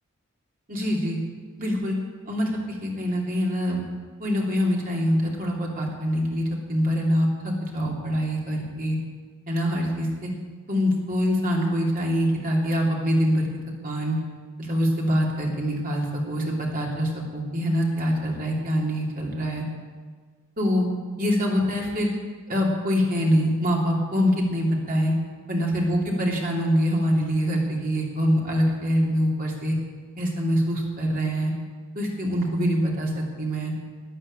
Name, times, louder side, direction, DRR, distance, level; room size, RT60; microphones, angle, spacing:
voice 1, 0.7-1.2 1.6-1.9 2.3-2.5 2.8-3.8 4.2-9.0 9.5-10.3 10.7-13.5 13.8-14.1 14.6-19.6 20.6-20.9 21.2-22.1 22.5-25.1 25.5-29.8 30.2-31.5 31.9-33.7, equal, 40° right, -2 dB, 3.1 m, -24 dB
12.0 x 9.9 x 8.8 m, 1.5 s
head